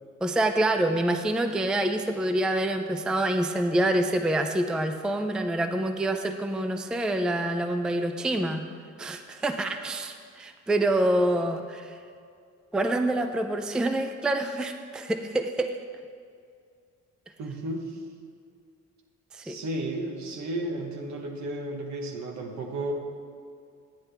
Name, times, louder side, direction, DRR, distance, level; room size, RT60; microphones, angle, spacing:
voice 1, 0.2-8.6 9.0-12.0 12.7-15.8 19.3-19.6, right 1 dB, 5° right, 7 dB, 0.4 m, -26 dB
voice 2, 17.4-18.0 19.4-22.9, right 1 dB, 65° right, 3 dB, 1.2 m, -33 dB
10.5 x 8.0 x 3.4 m, 2.3 s
cardioid pair, 90°, 30 cm